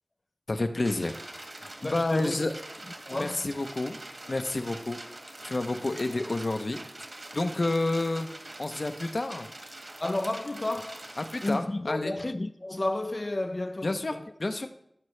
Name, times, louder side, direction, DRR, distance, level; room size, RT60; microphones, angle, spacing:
voice 1, 0.5-1.2 1.6-2.5 3.2-4.0 4.3-5.0 5.4-6.8 7.3-8.3 8.6-9.5 11.2-12.1 13.8-14.1 14.4-14.7, left 2 dB, 65° left, 0.7 m, -29 dB
sound 1, 0.8-11.6, right 1 dB, 55° right, 1.6 m, -44 dB
voice 2, 1.8-2.5 3.1-3.5 6.1-6.2 10.0-14.3, left 2 dB, 45° left, 0.3 m, -32 dB
15.5 x 6.5 x 3.2 m
wide cardioid pair, 65°, 0 cm